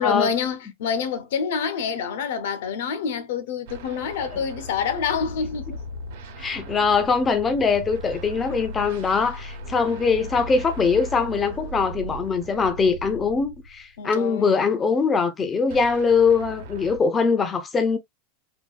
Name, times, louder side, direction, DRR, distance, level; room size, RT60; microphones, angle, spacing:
voice 1, 0.0-5.7 14.0-14.5, left 6 dB, 70° left, 0.6 m, -27 dB
sound 1, 3.7-13.9 15.7-17.0, equal, 65° right, 0.9 m, -37 dB
voice 2, 6.4-18.0, left 5 dB, 15° left, 0.4 m, -22 dB
3.5 x 2.3 x 2.3 m
supercardioid pair, 170°, 0 cm